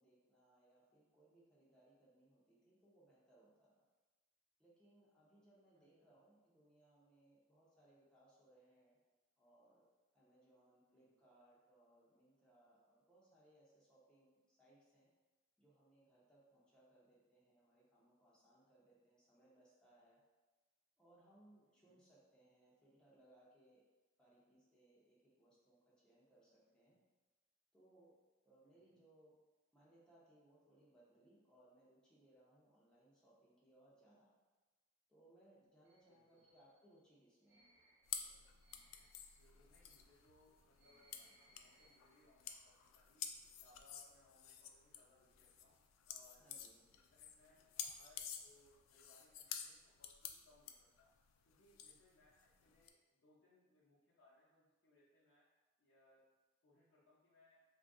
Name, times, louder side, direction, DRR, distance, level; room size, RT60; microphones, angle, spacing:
voice 1, 0.0-3.8 4.6-9.0 9.4-9.8 10.1-15.1 15.6-20.2 21.0-23.8 24.2-27.0 27.7-28.1 28.5-29.3 29.7-34.3 35.1-37.6 46.4-47.0, right 1 dB, 5° left, -8 dB, 0.6 m, -69 dB
voice 2, 5.7-6.1 10.9-11.2 21.6-22.0 26.8-27.0 28.6-29.0 36.1-36.5 39.3-43.2 43.6-45.8 46.1-46.6 46.9-51.1 51.4-55.5 55.8-56.2 56.6-57.6, left 1 dB, 65° left, -10 dB, 0.7 m, -71 dB
sound 1, 35.8-42.3, right 1 dB, 60° right, 0.6 m, -72 dB
sound 2, 38.1-52.9, left 8 dB, 85° left, 0.3 m, -51 dB
2.7 x 2.5 x 3.6 m, 1.2 s
head